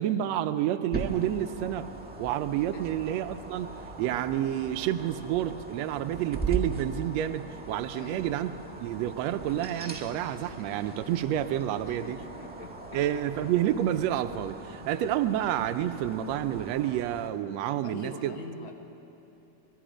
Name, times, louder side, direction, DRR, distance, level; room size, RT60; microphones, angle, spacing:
voice 1, 0.0-1.9 2.2-8.5 8.8-12.2 12.9-18.3, right 11 dB, 80° right, 10 dB, 1.6 m, -29 dB
sound 1, 0.9-17.3, right 3 dB, 10° right, 0.4 m, -40 dB
voice 2, 7.9-8.3 11.8-13.2 17.8-18.7, left 2 dB, 50° left, 3 dB, 1.6 m, -43 dB
25.5 x 20.0 x 5.1 m, 2.9 s
omnidirectional pair, 3.7 m